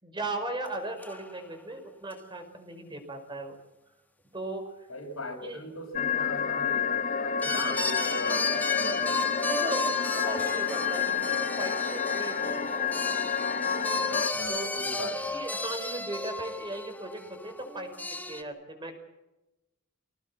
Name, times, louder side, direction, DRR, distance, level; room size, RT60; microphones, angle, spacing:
voice 1, 0.0-3.6 4.3-4.9 5.4-5.6 7.5-7.8 9.4-12.6 13.6-13.9 14.5-19.0, right 2 dB, 25° right, 4 dB, 5.2 m, -38 dB
sound 1, 0.7-0.8 1.0-1.4 2.1-2.2 7.4-18.4, left 2 dB, 10° left, 1.5 m, -34 dB
voice 2, 4.9-9.2 14.1-15.4, left 1 dB, 90° left, 3 dB, 6.5 m, -39 dB
sound 2, 5.9-14.3, left 7 dB, 40° left, 0.8 m, -29 dB
26.0 x 19.0 x 7.5 m, 0.99 s
head